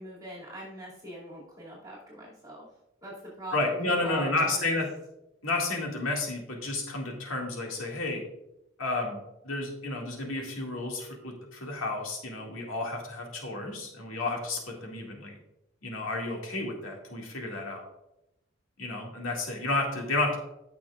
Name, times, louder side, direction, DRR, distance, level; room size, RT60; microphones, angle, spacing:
voice 1, 0.0-2.7 3.0-4.8, right 1 dB, 20° right, -6 dB, 2.3 m, -42 dB
voice 2, 3.5-4.9 5.4-8.2 8.8-9.2 9.4-15.4 15.8-17.9 18.8-20.4, left 2 dB, 80° left, 0 dB, 2.1 m, -31 dB
14.5 x 6.0 x 2.4 m, 0.87 s
head